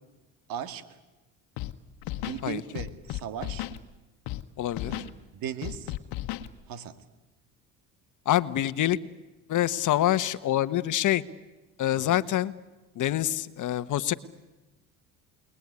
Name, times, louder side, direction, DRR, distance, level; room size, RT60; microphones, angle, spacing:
voice 1, 0.5-0.8 2.1-3.7 4.8-5.9 6.7-7.0 12.0-12.2, right 9 dB, 65° right, 12 dB, 2.3 m, -38 dB
Scratching (performance technique), 1.6-1.7 2.0-2.4 2.7-3.8 4.3-4.4 4.7-5.1 5.6-6.5, left 15 dB, 70° left, 1.4 m, -34 dB
voice 2, 4.6-4.9 8.2-9.0 9.5-11.2 11.8-12.5 13.0-14.1, left 13 dB, 55° left, 15 dB, 1.3 m, -26 dB
29.5 x 21.0 x 9.8 m, 1.1 s
supercardioid pair, 80°, 37 cm